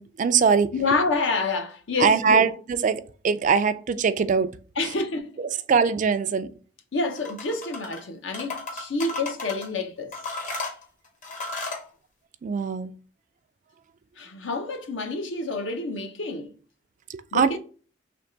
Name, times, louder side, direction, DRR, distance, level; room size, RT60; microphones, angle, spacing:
voice 1, 0.0-0.7 2.0-4.5 5.4-6.5 12.4-12.9 17.1-17.6, right 6 dB, 40° right, 0.3 m, -22 dB
voice 2, 0.7-2.5 4.8-5.3 6.9-10.1 14.2-16.5 17.3-17.6, left 3 dB, 65° left, 0.7 m, -28 dB
sound 1, 7.2-8.0 8.3-9.7 10.1-11.9, left 3 dB, 40° left, 0.9 m, -34 dB
3.4 x 3.2 x 3.8 m
head